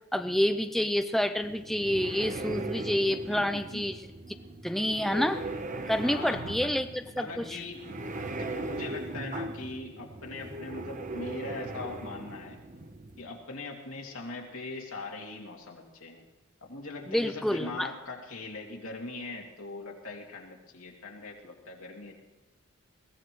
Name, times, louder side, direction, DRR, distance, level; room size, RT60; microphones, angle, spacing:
voice 1, 0.1-4.0 4.6-5.4 5.9-7.4 17.1-17.9, equal, ahead, 8 dB, 0.4 m, -28 dB
sound 1, 1.4-13.2, right 2 dB, 35° right, 1.0 m, -39 dB
voice 2, 3.3-3.8 6.0-6.7 7.2-7.9 8.4-12.6 13.2-16.2 16.6-22.1, left 3 dB, 85° left, -1 dB, 2.7 m, -41 dB
22.0 x 16.0 x 3.1 m, 1.1 s
head